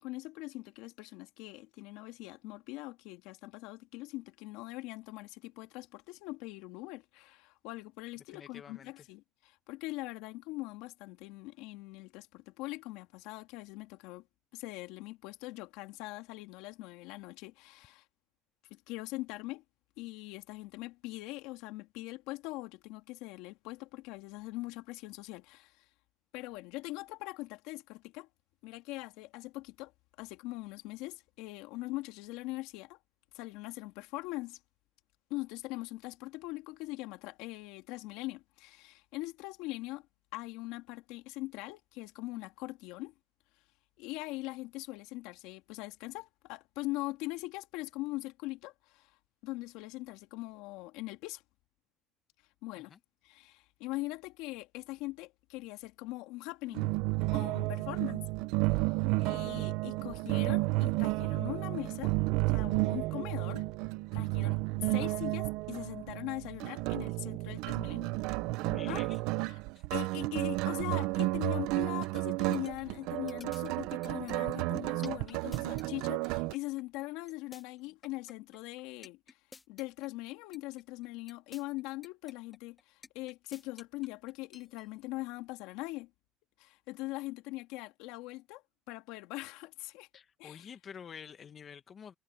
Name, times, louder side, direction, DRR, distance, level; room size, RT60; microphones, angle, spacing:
voice 1, 0.0-14.2 14.5-18.0 18.7-19.6 20.0-25.8 26.3-28.3 28.6-29.9 30.2-33.0 33.3-34.6 35.3-40.1 40.3-43.1 44.0-49.1 49.4-51.4 52.6-52.9 53.2-56.9 57.3-58.2 58.7-58.9 59.2-62.1 62.5-63.7 64.1-68.1 68.9-69.0 69.5-69.6 69.9-79.4 79.7-86.1 86.6-88.6 88.9-90.1 90.4-90.7, left 20 dB, 80° left, 2.6 m, -41 dB
voice 2, 8.3-8.9 52.8-53.0 68.6-69.2 69.8-69.9 90.1-92.1, left 7 dB, 40° left, 1.6 m, -48 dB
sound 1, 56.7-76.5, right 21 dB, 80° right, 0.7 m, -32 dB
sound 2, 72.0-85.1, left 4 dB, 20° left, 1.4 m, -53 dB
supercardioid pair, 100°, 0 cm